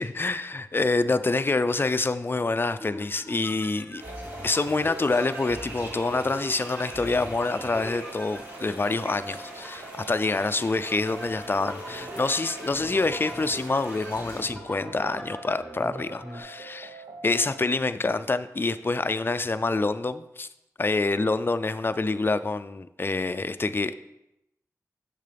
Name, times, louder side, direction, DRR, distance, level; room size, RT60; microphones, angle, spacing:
voice 1, 0.0-4.0 4.4-20.5 20.8-23.9, left 3 dB, 35° left, 12 dB, 0.4 m, -26 dB
sound 1, 2.8-16.4, equal, 5° left, 1.3 m, -43 dB
sound 2, 4.0-14.4, right 1 dB, 35° right, 3.1 m, -43 dB
sound 3, 4.0-17.7, right 2 dB, 80° right, 0.8 m, -44 dB
7.5 x 6.5 x 3.4 m, 0.86 s
cardioid pair, 40°, 6 cm